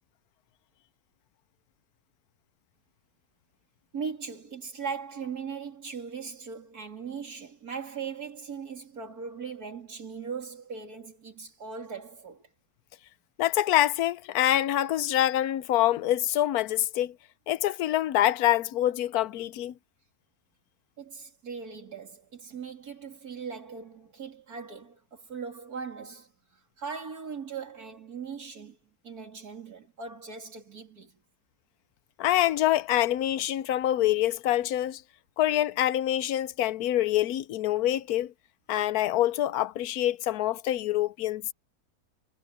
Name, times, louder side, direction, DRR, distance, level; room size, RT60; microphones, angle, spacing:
voice 1, 3.9-12.5 21.0-28.8 29.0-31.2, right 6 dB, 85° right, 3.4 m, -39 dB
voice 2, 13.4-17.1 17.5-19.7 32.2-35.0 35.4-38.3 38.7-41.5, left 13 dB, 80° left, 1.1 m, -25 dB
omnidirectional pair, 1.6 m